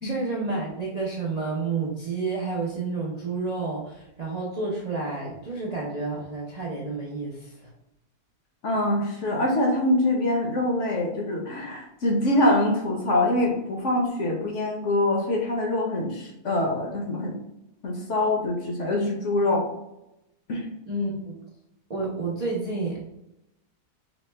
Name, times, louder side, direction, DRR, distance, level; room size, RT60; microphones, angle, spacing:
voice 1, 0.0-7.7 20.9-21.4 21.9-23.1, right 3 dB, 70° right, -4 dB, 0.3 m, -30 dB
voice 2, 8.6-17.3 17.8-19.7 20.5-20.7, left 1 dB, 60° left, 0 dB, 0.9 m, -24 dB
5.1 x 2.0 x 3.2 m, 0.87 s
omnidirectional pair, 1.7 m